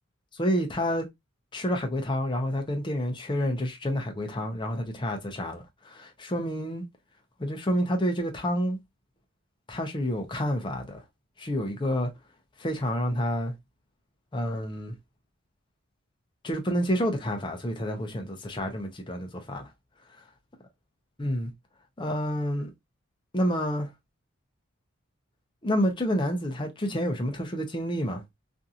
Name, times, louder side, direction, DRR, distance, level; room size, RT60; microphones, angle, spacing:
voice 1, 0.3-1.1 1.5-6.8 7.4-8.8 9.7-11.0 11.4-12.1 12.6-13.5 14.3-14.9 16.4-19.7 21.2-21.5 22.0-22.7 23.3-23.9 25.6-28.2, equal, 20° left, 0.6 m, -29 dB
2.8 x 2.6 x 2.4 m
head